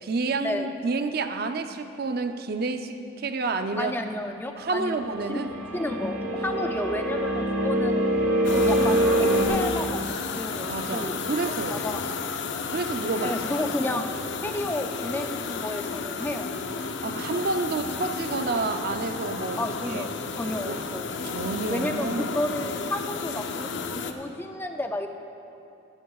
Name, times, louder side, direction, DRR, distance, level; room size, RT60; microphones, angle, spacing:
voice 1, 0.0-4.0 4.6-5.5 10.7-11.9 12.7-13.3 17.0-19.6 19.8-20.1 20.6-20.8 21.2-22.4, right 3 dB, 45° right, 8 dB, 0.5 m, -29 dB
voice 2, 3.8-5.0 5.3-8.0 8.5-11.1 11.5-12.0 13.2-14.1 14.4-16.5 19.6-20.1 20.4-21.1 21.7-25.1, left 1 dB, 10° left, 5 dB, 0.3 m, -32 dB
sound 1, 5.0-9.5, right 1 dB, 85° right, 1.2 m, -24 dB
sound 2, 8.4-24.1, left 4 dB, 55° left, 0.6 m, -32 dB
17.0 x 12.5 x 2.4 m, 2.7 s
head